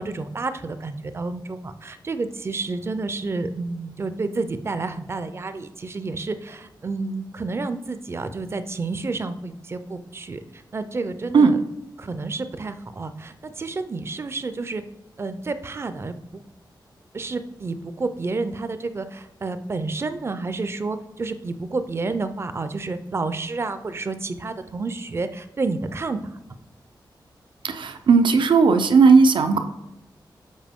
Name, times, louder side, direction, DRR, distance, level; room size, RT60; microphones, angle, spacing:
voice 1, 0.0-11.6 12.0-14.8 15.2-16.4 17.1-26.4, right 3 dB, 30° right, 11 dB, 0.4 m, -30 dB
voice 2, 27.6-29.6, right 5 dB, 90° right, 8 dB, 0.6 m, -16 dB
7.4 x 5.1 x 3.6 m, 0.89 s
wide cardioid pair, 175°, 8 cm